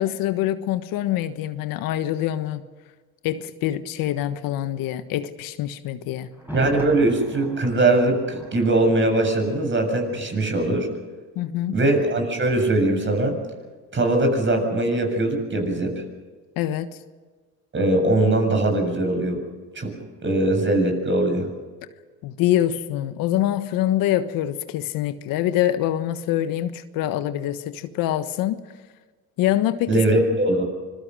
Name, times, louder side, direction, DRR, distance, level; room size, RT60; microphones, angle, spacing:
voice 1, 0.0-2.6 3.2-6.3 11.3-11.8 16.6-16.9 22.2-28.6 29.4-30.0, left 12 dB, 75° left, 1.4 m, -25 dB
Thunder, 6.3-10.2 10.5-10.6, equal, 5° right, 7.9 m, -39 dB
voice 2, 6.5-10.9 11.7-13.4 13.9-15.9 17.7-19.4 19.7-19.9 20.2-21.5 29.9-30.6, right 2 dB, 35° right, 7.5 m, -21 dB
26.0 x 22.0 x 6.4 m
supercardioid pair, 80°, 35 cm